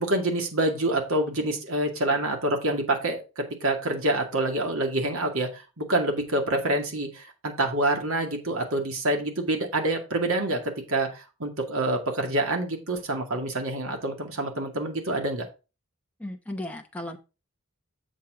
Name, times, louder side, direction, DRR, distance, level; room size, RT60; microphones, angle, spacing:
voice 1, 0.0-10.6 10.9-15.5, right 1 dB, 65° right, 3 dB, 2.1 m, -27 dB
voice 2, 16.2-17.2, left 1 dB, 5° left, 3 dB, 0.9 m, -35 dB
7.5 x 7.2 x 3.7 m, 0.30 s
head